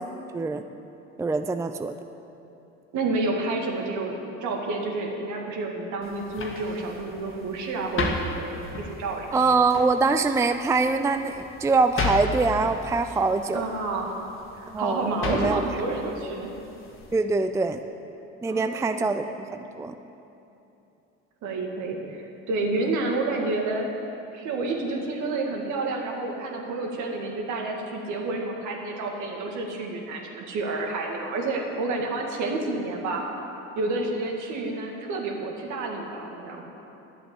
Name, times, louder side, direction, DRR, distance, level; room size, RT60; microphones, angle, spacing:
voice 1, 1.2-1.9 9.3-13.6 14.7-15.6 17.1-17.8 18.4-19.5 19.8-19.9, right 3 dB, 10° right, 8 dB, 0.4 m, -24 dB
voice 2, 2.9-9.4 13.5-14.2 14.5-16.5 18.4-19.1 21.4-23.9 24.3-33.2 33.8-36.6, right 2 dB, 60° right, 1 dB, 2.1 m, -29 dB
sound 1, 6.0-17.2, left 3 dB, 40° left, 1.8 m, -35 dB
10.5 x 7.9 x 7.8 m, 2.9 s
hypercardioid pair, 75°, 33 cm